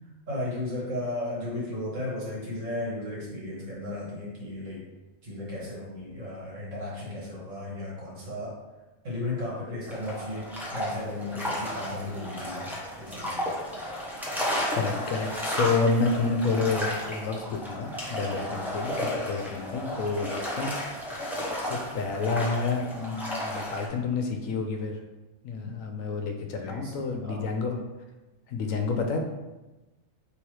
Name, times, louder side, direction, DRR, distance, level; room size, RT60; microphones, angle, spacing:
voice 1, 0.3-4.9 5.2-8.6 9.0-13.5 18.3-18.5 25.6-25.7 26.6-26.9 27.2-27.4, left 1 dB, 65° right, -5 dB, 1.8 m, -35 dB
sound 1, 9.9-23.9, equal, ahead, 0.6 m, -33 dB
voice 2, 14.7-20.7 21.1-25.0 25.4-27.8 28.5-29.2, left 4 dB, 80° left, 4 dB, 1.0 m, -29 dB
3.3 x 3.0 x 4.7 m, 1.1 s
omnidirectional pair, 1.4 m